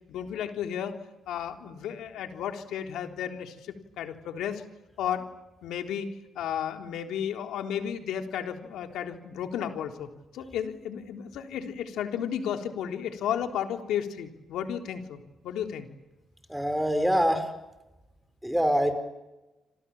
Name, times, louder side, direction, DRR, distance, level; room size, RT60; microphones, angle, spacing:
voice 1, 0.1-1.0 1.3-4.6 5.0-5.3 5.6-6.1 6.4-15.9, left 9 dB, 80° left, 5 dB, 3.7 m, -33 dB
voice 2, 16.5-17.5 18.4-18.9, equal, ahead, 9 dB, 5.1 m, -24 dB
28.0 x 27.5 x 7.3 m, 1.0 s
cardioid pair, 90°, 0 cm